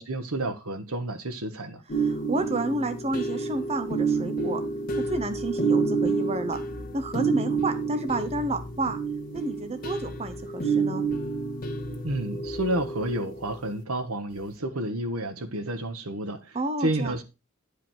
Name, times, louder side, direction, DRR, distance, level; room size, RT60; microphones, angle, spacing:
voice 1, 0.0-1.8 12.0-17.2, right 1 dB, 85° right, 1.4 m, -30 dB
sound 1, 1.9-13.5, right 4 dB, 40° left, 1.6 m, -29 dB
voice 2, 2.0-4.6 5.1-6.6 6.9-9.0 9.3-11.0 16.5-17.1, right 2 dB, 30° right, 0.8 m, -30 dB
10.5 x 5.1 x 4.6 m
head